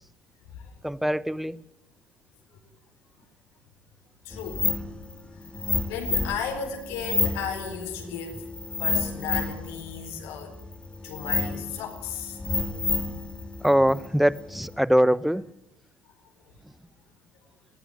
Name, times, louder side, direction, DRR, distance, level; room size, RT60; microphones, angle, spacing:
voice 1, 0.8-1.6 13.6-15.4, equal, ahead, 0.8 m, -22 dB
voice 2, 4.2-4.7 5.9-8.4 8.8-10.5 11.0-12.4, left 7 dB, 65° left, 4.3 m, -34 dB
sound 1, 4.3-14.8, left 3 dB, 20° left, 3.5 m, -30 dB
21.0 x 16.5 x 9.4 m
figure-of-eight pair, 55°, 5 cm